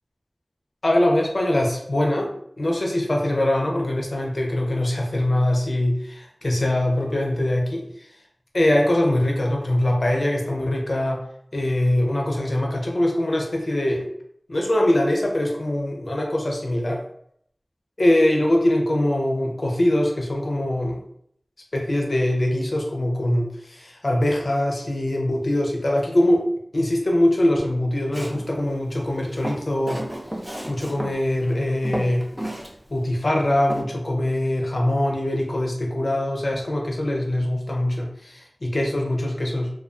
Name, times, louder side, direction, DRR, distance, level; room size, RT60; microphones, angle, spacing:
voice 1, 0.8-5.9 6.4-8.1 8.5-11.2 11.5-14.1 14.5-17.0 18.0-21.0 21.7-26.5 26.7-30.0 30.7-32.3 32.9-39.7, left 1 dB, 65° left, 0 dB, 0.5 m, -22 dB
Walk footsteps, 28.1-28.5 29.2-31.1 31.5-31.6 31.8-32.7 33.0-33.1 33.7-33.8, right 1 dB, 10° right, 0.5 m, -31 dB
2.3 x 2.3 x 2.4 m, 0.69 s
wide cardioid pair, 65°, 0 cm